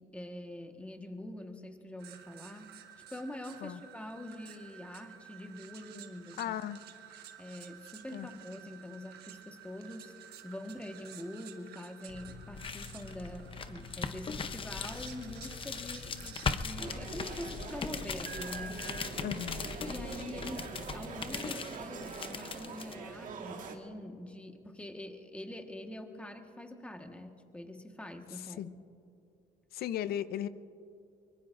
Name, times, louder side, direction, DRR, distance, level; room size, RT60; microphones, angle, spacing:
voice 1, 0.0-2.7 3.1-6.6 7.4-10.1 10.4-19.1 19.8-28.7, left 1 dB, 5° left, 4 dB, 1.4 m, -45 dB
sound 1, 2.0-16.9 18.2-19.1, right 8 dB, 70° right, 1.3 m, -52 dB
voice 2, 6.4-6.8 8.1-8.3 19.2-19.7 28.6-28.7 29.7-30.5, left 11 dB, 65° left, 14 dB, 0.6 m, -36 dB
sound 2, 12.1-23.0, left 5 dB, 30° left, 0.7 m, -39 dB
sound 3, 16.8-23.8, right 5 dB, 50° right, 1.6 m, -44 dB
24.0 x 23.0 x 2.6 m, 2.7 s
cardioid pair, 110°, 17 cm